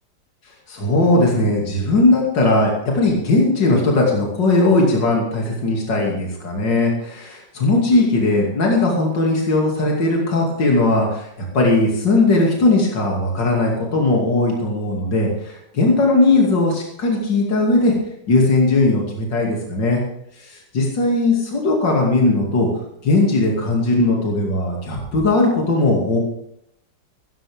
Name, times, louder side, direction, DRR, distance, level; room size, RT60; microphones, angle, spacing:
voice 1, 0.7-11.3 11.5-17.9 18.3-20.0 20.4-22.7 23.0-26.2, left 2 dB, 75° left, -2 dB, 3.3 m, -18 dB
15.5 x 15.0 x 3.6 m, 0.77 s
omnidirectional pair, 1.9 m